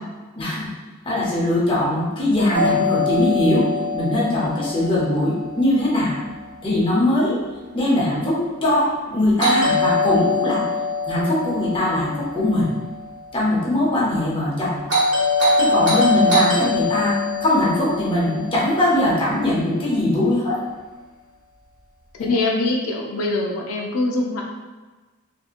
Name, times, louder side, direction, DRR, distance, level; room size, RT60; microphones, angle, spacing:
voice 1, 0.4-0.7 1.1-3.7 3.9-6.2 6.6-7.4 7.7-10.6 11.1-12.7 13.3-14.8 15.6-20.6 22.2-22.3, left 1 dB, 25° left, -6 dB, 0.6 m, -21 dB
Doorbell, 2.5-6.5 9.4-13.6 14.9-19.3, left 2 dB, 80° right, 1.2 m, -23 dB
voice 2, 22.1-24.4, left 2 dB, 85° left, 0 dB, 0.4 m, -23 dB
2.8 x 2.6 x 2.4 m, 1.3 s
head